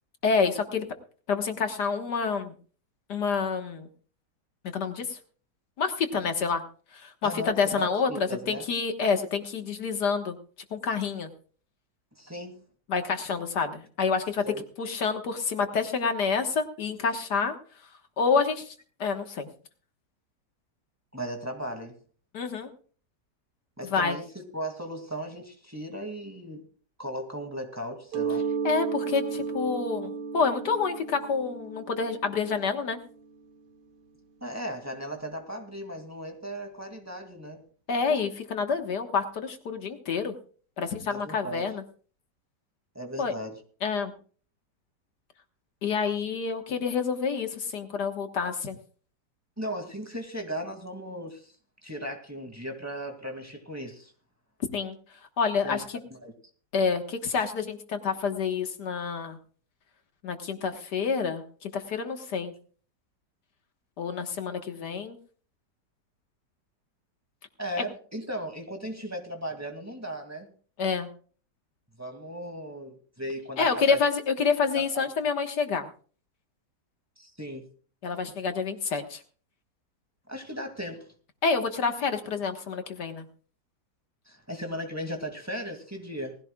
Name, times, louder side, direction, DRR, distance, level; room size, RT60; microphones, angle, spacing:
voice 1, 0.2-0.9 1.3-2.5 3.1-3.9 4.7-5.2 5.8-6.6 6.9-10.4 10.7-11.3 12.9-14.4 14.8-17.5 18.2-18.7 19.0-19.5 22.3-22.7 23.9-24.2 28.6-33.0 37.9-40.3 40.8-41.8 43.2-43.3 43.8-44.1 45.8-48.8 54.7-55.0 55.4-55.8 56.7-59.4 60.2-62.5 64.0-65.2 67.8-67.9 70.8-71.1 73.6-75.9 78.0-79.2 81.4-83.3, left 5 dB, 75° left, 6 dB, 2.0 m, -28 dB
voice 2, 7.2-8.6 12.2-12.5 14.4-14.7 21.1-22.0 23.8-26.6 27.0-28.5 34.4-37.6 41.1-41.7 42.9-43.6 49.6-51.5 51.8-54.1 55.6-55.8 56.1-56.3 67.6-70.5 72.0-74.0 74.7-75.0 77.2-77.7 80.3-81.1 84.3-86.4, equal, 10° right, 3 dB, 2.3 m, -37 dB
Mallet percussion, 28.1-33.7, right 6 dB, 85° right, 2.0 m, -34 dB
19.5 x 16.0 x 2.3 m, 0.41 s
omnidirectional pair, 1.8 m